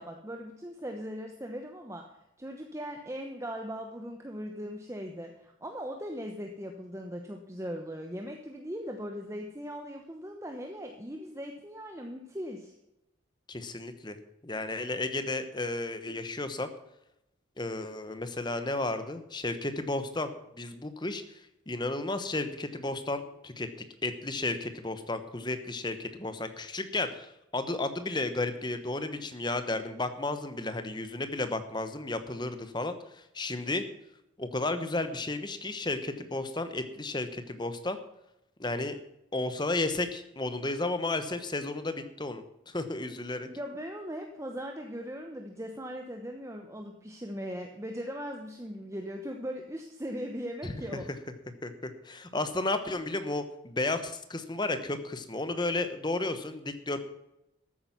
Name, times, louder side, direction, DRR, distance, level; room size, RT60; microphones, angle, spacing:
voice 1, 0.0-2.0 2.4-12.7 43.4-51.1, equal, 15° right, 3 dB, 0.9 m, -39 dB
voice 2, 13.5-14.2 14.4-16.7 17.6-20.3 20.6-21.2 21.7-23.7 24.0-33.8 34.4-38.0 38.6-39.0 39.3-43.5 50.6-50.7 51.6-57.0, left 2 dB, 20° left, 9 dB, 1.0 m, -33 dB
13.5 x 8.8 x 6.1 m, 0.87 s
head